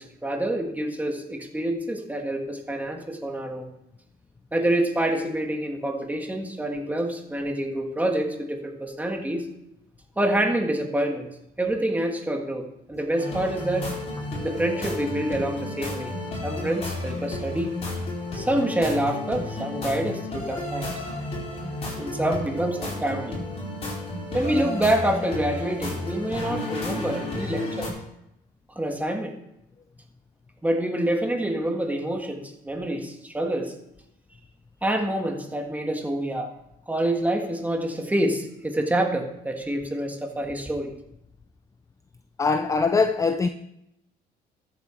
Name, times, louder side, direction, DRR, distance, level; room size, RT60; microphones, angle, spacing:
voice 1, 0.0-3.7 4.5-9.5 10.2-11.3 11.6-13.9 14.4-16.1 16.4-17.7 18.3-20.9 22.0-23.4 24.3-27.9 28.8-29.4 30.6-33.7 34.8-36.5 36.9-40.9, right 1 dB, 10° right, 1.8 m, -27 dB
sound 1, 13.1-27.9, left 2 dB, 35° left, 4.4 m, -32 dB
voice 2, 42.4-43.5, left 4 dB, 20° left, 0.4 m, -22 dB
13.5 x 7.7 x 4.5 m
cardioid pair, 110°, 17 cm